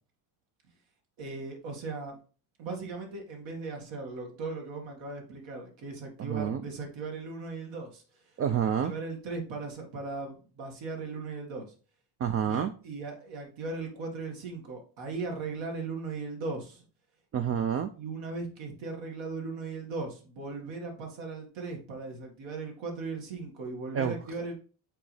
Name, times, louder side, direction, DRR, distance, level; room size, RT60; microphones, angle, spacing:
voice 1, 1.2-2.2 2.6-8.0 8.8-11.7 12.4-16.9 17.9-24.5, right 3 dB, 70° right, 2 dB, 2.0 m, -38 dB
voice 2, 6.2-6.6 8.4-8.9 12.2-12.7 17.3-17.9 23.9-24.2, right 8 dB, 35° right, 9 dB, 0.4 m, -28 dB
8.6 x 3.9 x 3.3 m, 0.37 s
cardioid pair, 140°, 48 cm